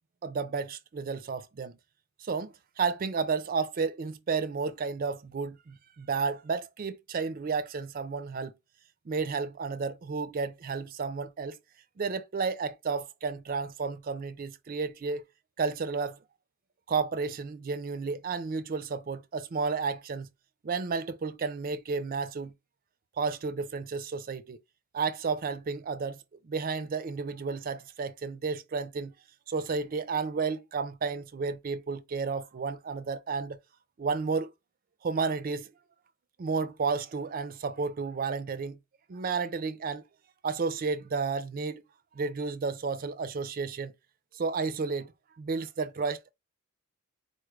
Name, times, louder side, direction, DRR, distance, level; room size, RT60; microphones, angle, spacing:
voice 1, 0.2-1.8 2.2-8.5 9.1-11.6 12.0-15.2 15.6-16.2 16.9-20.3 20.6-22.5 23.2-24.6 24.9-29.1 29.5-33.6 34.0-34.5 35.0-35.7 36.4-38.8 39.1-40.0 40.4-41.8 42.1-43.9 44.3-45.1 45.4-46.3, right 4 dB, 40° right, 0.4 m, -32 dB
4.2 x 2.3 x 3.1 m
head